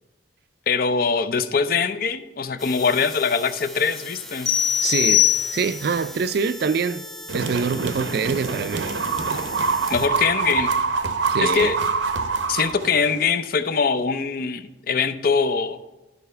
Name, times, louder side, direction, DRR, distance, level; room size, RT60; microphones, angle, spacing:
voice 1, 0.7-4.5 9.9-10.7 11.4-11.8 12.5-15.8, left 5 dB, 50° left, 0.5 m, -22 dB
sound 1, 2.6-10.1, left 1 dB, ahead, 0.6 m, -39 dB
sound 2, 4.5-6.0, left 11 dB, 70° left, 1.4 m, -21 dB
voice 2, 4.8-5.2 5.5-7.1 7.3-8.9 9.3-9.5 11.3-11.7, right 5 dB, 55° right, 0.4 m, -25 dB
sound 3, 7.3-13.3, right 4 dB, 85° right, 0.7 m, -25 dB
11.5 x 4.2 x 5.5 m
head